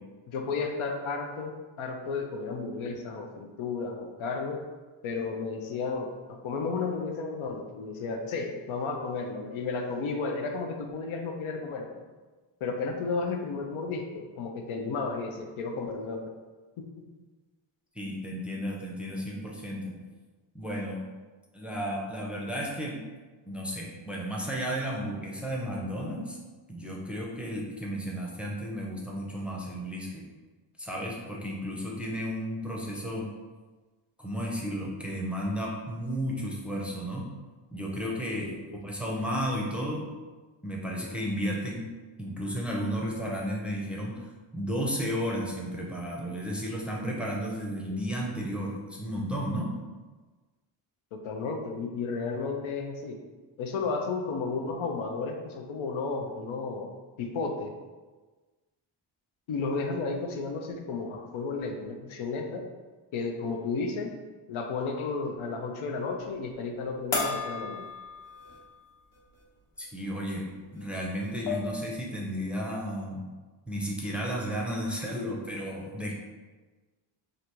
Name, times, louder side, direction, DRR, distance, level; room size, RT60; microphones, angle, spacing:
voice 1, 0.3-4.6 5.0-12.0 12.6-16.2 16.8-16.9 38.4-38.8 47.9-48.1 51.1-53.2 53.6-56.9 57.2-57.7 59.5-62.7 63.1-64.1 64.5-67.8, left 4 dB, 75° left, 3 dB, 0.6 m, -33 dB
voice 2, 18.0-19.9 20.5-21.0 21.5-23.0 23.5-26.4 26.7-30.2 30.8-33.3 34.2-37.2 37.7-38.5 38.8-40.1 40.6-41.9 42.2-44.2 44.5-49.7 69.8-73.2 73.7-76.1, equal, ahead, -3 dB, 0.5 m, -33 dB
sound 1, 67.1-68.7 69.1-69.2 70.8-70.9 71.2-71.8, left 4 dB, 45° left, 1.0 m, -33 dB
3.3 x 2.5 x 2.9 m, 1.3 s
cardioid pair, 85°, 49 cm